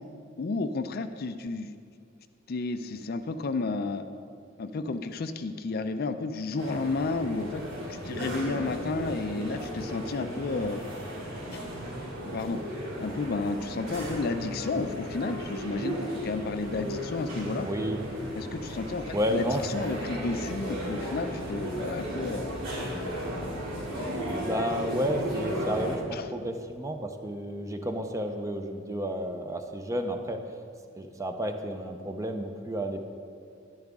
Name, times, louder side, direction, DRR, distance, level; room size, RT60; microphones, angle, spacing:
voice 1, 0.4-1.7 2.5-4.1 4.6-7.6 7.9-10.8 11.5-11.6 12.2-12.6 13.0-17.7 18.3-22.6 26.1-26.3, left 3 dB, 50° left, 10 dB, 0.4 m, -32 dB
sound 1, 6.6-26.0, equal, 75° right, 2.7 m, -35 dB
Wind instrument woodwind instrument, 11.6-18.4, left 5 dB, 90° right, 2.3 m, -50 dB
voice 2, 17.6-18.0 19.1-19.6 24.2-30.4 30.9-33.0, equal, 15° right, 6 dB, 0.6 m, -31 dB
10.5 x 10.5 x 3.6 m, 2.3 s
head